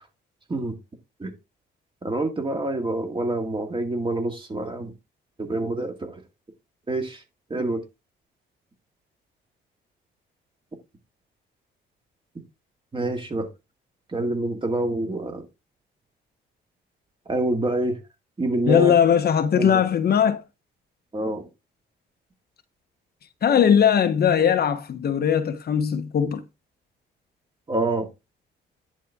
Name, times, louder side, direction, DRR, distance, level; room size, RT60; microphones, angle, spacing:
voice 1, 2.0-4.9 5.4-6.1 6.9-7.2 7.5-7.8 12.9-13.5 14.1-15.4 17.3-18.0 18.4-18.9 19.6-19.8 21.1-21.5 27.7-28.1, right 2 dB, 25° right, 2.1 m, -26 dB
voice 2, 18.7-20.4 23.4-26.4, left 8 dB, 55° left, 1.0 m, -19 dB
10.0 x 4.1 x 3.6 m
cardioid pair, 90°, 20 cm